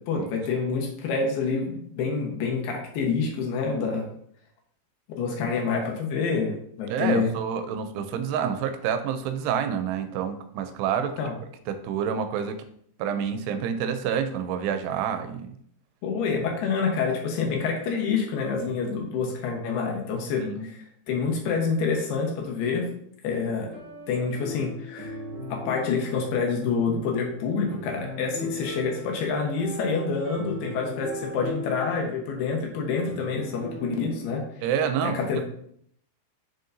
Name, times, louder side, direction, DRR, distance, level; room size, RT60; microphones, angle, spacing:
voice 1, 0.1-4.1 5.2-7.3 11.2-11.3 16.0-22.9 23.2-23.7 24.1-25.2 25.5-34.4 35.0-35.4, left 5 dB, 75° left, 1 dB, 3.0 m, -27 dB
voice 2, 6.9-11.2 11.7-12.6 13.0-15.6 16.4-16.5 20.4-20.7 34.6-35.3, right 8 dB, 85° right, 9 dB, 2.6 m, -28 dB
sound 1, 23.6-34.3, left 1 dB, 45° right, 2.3 m, -39 dB
6.7 x 6.4 x 2.6 m, 0.67 s
omnidirectional pair, 4.8 m